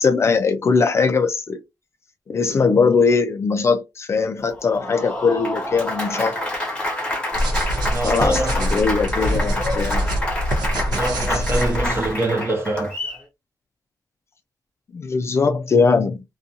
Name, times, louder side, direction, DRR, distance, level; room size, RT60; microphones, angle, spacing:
voice 1, 0.0-1.6 2.3-6.4 8.0-10.0 11.3-11.4 14.9-16.2, left 4 dB, 40° left, 0.4 m, -20 dB
Applause, 4.5-13.2, left 1 dB, 15° left, 1.0 m, -28 dB
sound 1, 7.3-12.1, equal, 70° right, 0.9 m, -24 dB
voice 2, 7.9-8.8 10.8-12.9, right 2 dB, 35° right, 0.9 m, -25 dB
2.5 x 2.3 x 2.7 m
wide cardioid pair, 150°, 7 cm